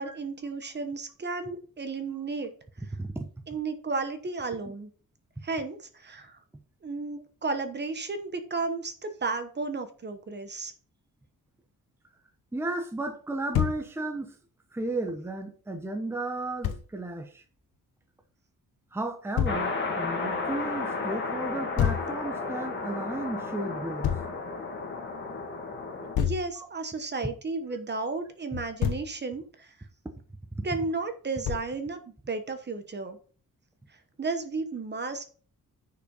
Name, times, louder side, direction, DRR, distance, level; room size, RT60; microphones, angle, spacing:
voice 1, 0.0-2.5 3.5-4.9 5.4-6.4 6.8-10.7 26.2-29.7 30.6-32.0 32.3-33.2 34.2-35.2, right 3 dB, 30° right, 1.1 m, -33 dB
voice 2, 2.9-3.3 12.5-14.4 14.7-17.4 18.9-24.1 26.6-26.7 30.5-30.7, right 2 dB, 5° right, 0.9 m, -34 dB
Thump thud, 13.5-13.8 16.6-16.8 19.4-19.6 21.8-22.1 24.0-24.3 26.1-26.5 28.5-29.1 31.4-31.8, left 9 dB, 85° left, 1.1 m, -27 dB
sound 1, 19.5-26.2, left 3 dB, 30° left, 1.9 m, -33 dB
10.0 x 5.8 x 4.0 m
wide cardioid pair, 180°, 35 cm